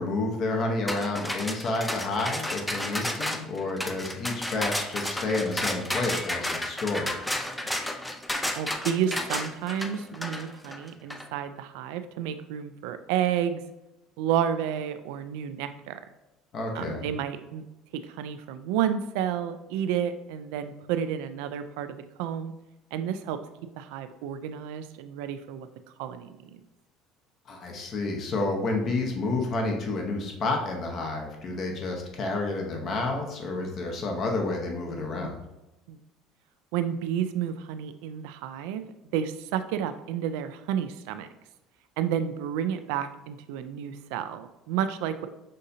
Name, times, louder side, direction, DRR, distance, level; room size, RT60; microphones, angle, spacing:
voice 1, 0.0-7.1 16.5-17.0 27.5-35.4, left 2 dB, 45° left, 1 dB, 0.9 m, -30 dB
sound 1, 0.9-11.2, left 1 dB, 5° left, 0.4 m, -32 dB
voice 2, 8.6-13.6 14.2-16.0 16.7-17.6 17.9-22.5 22.9-23.4 23.8-25.7 26.0-26.6 35.9-36.0 36.7-38.8 39.1-41.3 42.0-45.3, right 9 dB, 80° right, 10 dB, 0.3 m, -31 dB
6.3 x 2.7 x 2.7 m, 0.96 s
supercardioid pair, 105°, 0 cm